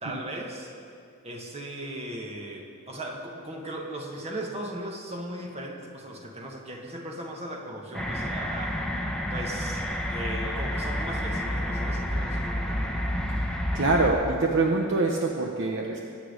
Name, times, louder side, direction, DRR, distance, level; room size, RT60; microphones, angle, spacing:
voice 1, 0.0-0.7 1.2-8.8 9.3-13.0, right 1 dB, 30° right, 0 dB, 1.5 m, -37 dB
sound 1, 7.9-14.1, equal, 5° left, 1.2 m, -29 dB
voice 2, 13.7-16.0, right 3 dB, 60° right, 1 dB, 1.0 m, -24 dB
22.0 x 8.4 x 5.2 m, 2.5 s
head